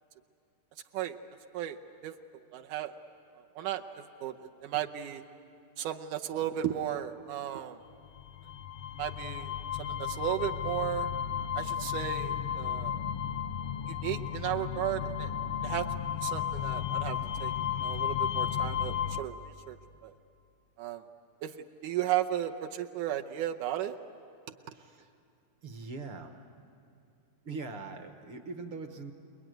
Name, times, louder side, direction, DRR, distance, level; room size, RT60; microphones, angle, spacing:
voice 1, 2.5-2.9 3.6-5.2 5.8-7.8 9.0-9.5 9.8-11.1 11.6-13.0 13.9-15.3 15.6-15.9 16.2-17.5 17.8-19.8 20.0-20.2 20.8-21.0 21.4-24.0, right 12 dB, 80° right, 4 dB, 2.2 m, -35 dB
sound 1, 8.2-19.2, left 9 dB, 75° left, 1.5 m, -33 dB
voice 2, 24.7-25.1 25.6-26.4 27.4-29.1, right 3 dB, 55° right, 6 dB, 1.6 m, -42 dB
28.5 x 21.5 x 9.3 m, 2.4 s
omnidirectional pair, 3.7 m